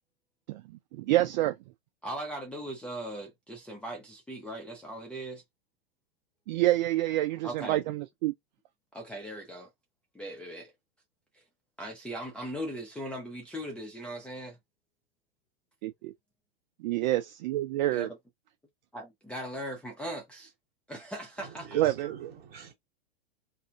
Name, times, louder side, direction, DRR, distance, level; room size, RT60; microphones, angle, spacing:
voice 1, 0.5-1.6 6.5-8.3 15.8-16.1 16.8-18.1 21.7-22.3, right 15 dB, 50° right, 0.4 m, -28 dB
voice 2, 2.0-5.4 7.4-7.8 8.9-9.7 10.1-10.7 11.3-11.4 11.8-14.6 17.9-18.2 18.9-20.5 20.9-21.8, right 1 dB, 5° left, 0.5 m, -39 dB
voice 3, 21.4-22.7, right 7 dB, 30° right, 1.4 m, -44 dB
2.7 x 2.5 x 2.3 m
hypercardioid pair, 125°, 31 cm